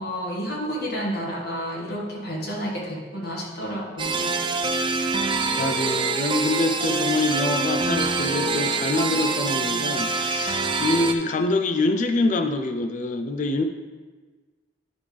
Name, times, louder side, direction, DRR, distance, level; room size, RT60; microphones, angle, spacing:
voice 1, 0.0-4.4, equal, 60° left, -3 dB, 1.5 m, -30 dB
sound 1, 4.0-11.1, right 4 dB, 25° right, 0.4 m, -25 dB
voice 2, 5.6-13.6, left 2 dB, 40° left, 6 dB, 0.4 m, -25 dB
9.9 x 3.4 x 5.0 m, 1.4 s
head